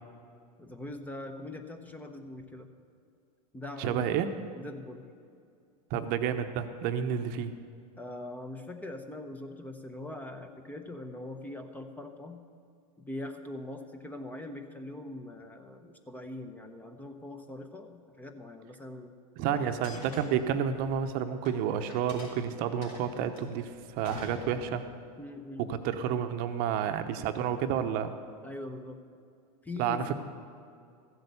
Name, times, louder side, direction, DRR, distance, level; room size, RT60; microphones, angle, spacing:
voice 1, 0.6-2.7 3.5-4.2 4.5-5.0 8.0-12.4 13.0-19.1 19.5-19.8 25.2-25.7 28.4-29.0 29.6-30.1, left 2 dB, 10° left, 6 dB, 0.8 m, -42 dB
voice 2, 3.8-4.3 5.9-7.5 19.4-24.8 25.7-28.1 29.8-30.1, right 8 dB, 50° right, 8 dB, 0.8 m, -30 dB
sound 1, 19.8-21.6 21.9-25.0, left 2 dB, 65° left, 3.5 m, -46 dB
14.0 x 7.9 x 7.0 m, 2.4 s
hypercardioid pair, 120°, 20 cm